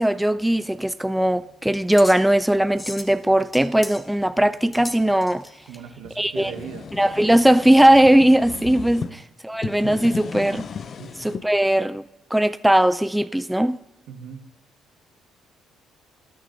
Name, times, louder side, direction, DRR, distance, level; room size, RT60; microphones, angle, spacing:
voice 1, 0.0-5.4 6.2-6.5 7.0-10.6 11.2-12.0 12.3-13.8, right 1 dB, 5° right, 0.3 m, -19 dB
sound 1, 0.6-5.8, left 1 dB, 15° left, 1.3 m, -39 dB
voice 2, 5.7-6.9 9.0-9.2 11.0-11.1 14.1-14.4, right 8 dB, 75° right, 1.1 m, -39 dB
sound 2, 6.0-9.1 9.5-11.5, left 6 dB, 50° left, 0.5 m, -35 dB
20.0 x 9.9 x 2.5 m
hypercardioid pair, 55°, 0 cm